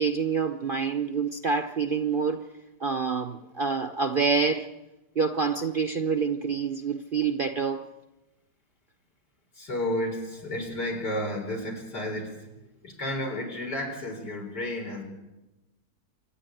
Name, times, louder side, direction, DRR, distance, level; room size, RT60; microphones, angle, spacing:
voice 1, 0.0-2.4 2.8-4.7 5.2-7.8, right 5 dB, 45° right, 7 dB, 0.7 m, -27 dB
voice 2, 9.5-15.0, left 1 dB, 85° left, 3 dB, 4.8 m, -32 dB
27.0 x 10.5 x 9.1 m, 1.0 s
omnidirectional pair, 1.7 m